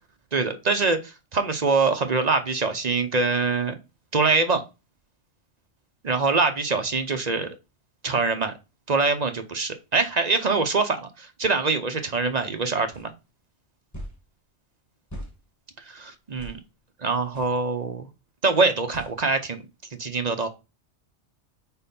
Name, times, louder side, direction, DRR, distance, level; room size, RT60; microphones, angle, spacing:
voice 1, 0.3-3.7 4.1-4.6 6.0-7.6 8.0-8.5 8.9-13.1 15.8-16.6 17.0-18.1 18.4-19.6 20.0-20.5, right 4 dB, 40° right, 7 dB, 0.8 m, -24 dB
sound 1, 12.9-13.1 13.9-14.2 15.1-15.3 16.4-16.6 17.3-17.5 18.9-19.2, equal, 15° left, 1.4 m, -39 dB
4.6 x 4.4 x 5.3 m, 0.28 s
omnidirectional pair, 1.2 m